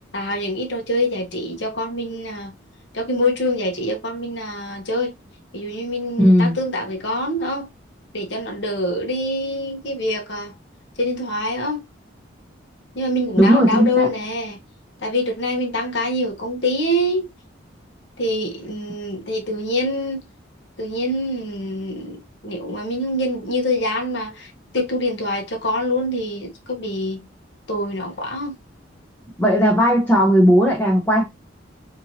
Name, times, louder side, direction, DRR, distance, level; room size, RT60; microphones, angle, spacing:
voice 1, 0.1-2.5 2.9-5.1 5.5-7.7 8.1-10.5 11.0-11.8 12.9-14.6 15.0-17.2 18.2-20.2 20.8-27.2 27.7-28.5, left 1 dB, 60° left, 1.1 m, -25 dB
voice 2, 6.2-6.6 13.4-14.1 29.4-31.2, equal, 10° left, 0.8 m, -16 dB
4.4 x 2.9 x 2.7 m
head